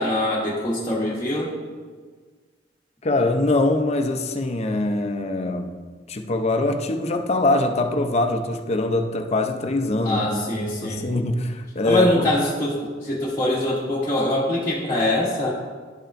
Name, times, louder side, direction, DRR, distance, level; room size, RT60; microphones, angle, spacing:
voice 1, 0.0-1.5 10.0-11.1 11.8-15.5, left 1 dB, 15° left, -7 dB, 0.9 m, -23 dB
voice 2, 3.0-5.7 6.1-12.3, left 2 dB, 35° left, 6 dB, 0.5 m, -23 dB
11.0 x 5.6 x 2.5 m, 1.5 s
head